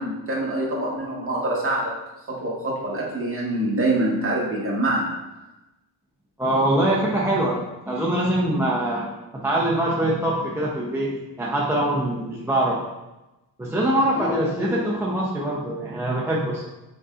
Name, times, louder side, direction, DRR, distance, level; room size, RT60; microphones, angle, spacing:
voice 1, 0.0-1.9 2.3-5.2, right 1 dB, 30° right, -3 dB, 1.3 m, -25 dB
voice 2, 6.4-9.1 9.4-12.8 13.6-16.7, right 1 dB, 5° right, -5 dB, 0.6 m, -23 dB
5.2 x 4.0 x 2.4 m, 1.0 s
cardioid pair, 105°, 43 cm